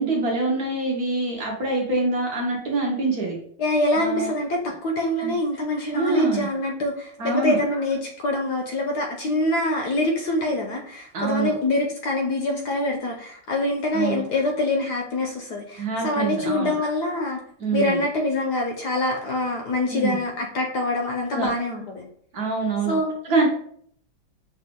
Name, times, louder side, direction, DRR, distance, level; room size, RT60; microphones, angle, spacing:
voice 1, 0.0-3.4 3.9-4.3 5.2-5.4 5.9-6.5 7.2-7.6 11.1-11.5 13.9-14.2 15.8-16.7 17.6-18.0 19.9-20.2 21.3-21.5 22.3-23.0 23.2-23.5, right 3 dB, 60° right, -1 dB, 1.1 m, -25 dB
voice 2, 3.6-17.4 17.7-22.0 22.9-23.1, left 2 dB, 65° left, 1 dB, 1.1 m, -25 dB
5.8 x 2.4 x 3.6 m, 0.62 s
omnidirectional pair, 2.2 m